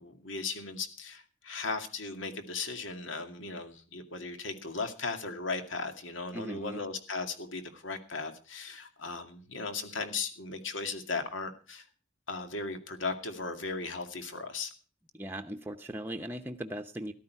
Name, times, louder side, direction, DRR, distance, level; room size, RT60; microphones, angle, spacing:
voice 1, 0.0-11.8 12.3-14.7, left 4 dB, 90° left, 7 dB, 2.2 m, -37 dB
voice 2, 6.3-6.8 15.1-17.1, right 1 dB, 10° right, 5 dB, 0.8 m, -38 dB
14.0 x 12.5 x 4.6 m, 0.38 s
head